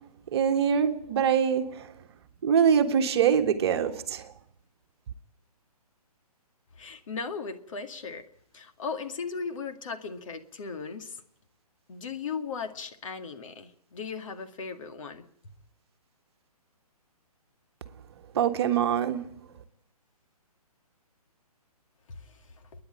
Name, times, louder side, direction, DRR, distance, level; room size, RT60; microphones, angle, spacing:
voice 1, 0.3-1.9 2.4-4.3 18.3-19.4, right 8 dB, 40° right, 1.5 m, -24 dB
voice 2, 6.8-8.2 8.5-11.2 11.9-15.2 22.1-22.3, left 5 dB, 55° left, 2.1 m, -37 dB
30.0 x 10.5 x 9.0 m
hypercardioid pair, 150°, 20 cm